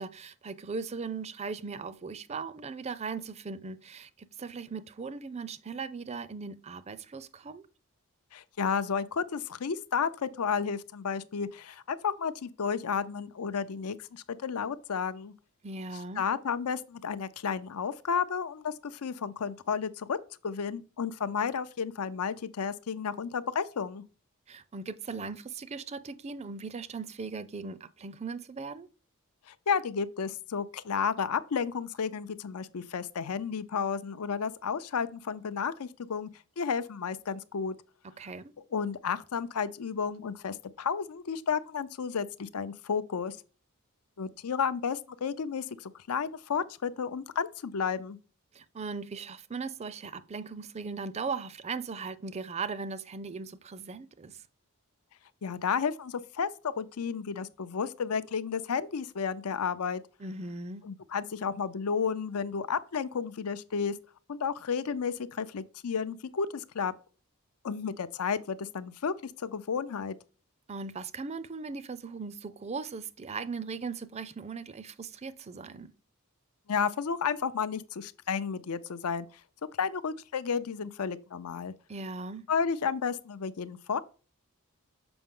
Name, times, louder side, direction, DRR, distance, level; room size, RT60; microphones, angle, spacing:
voice 1, 0.0-7.7 15.6-16.2 24.5-28.9 38.2-38.5 48.5-54.4 60.2-60.8 70.7-75.9 81.9-82.4, right 4 dB, 30° right, 0.4 m, -38 dB
voice 2, 8.3-15.3 16.2-20.2 20.4-24.0 29.5-36.3 36.6-37.7 38.7-43.4 44.2-48.2 55.4-60.0 60.8-63.9 64.3-66.9 67.6-70.2 76.7-79.3 79.8-81.7 82.5-84.0, left 6 dB, 85° left, 0.6 m, -32 dB
6.9 x 5.2 x 3.7 m
head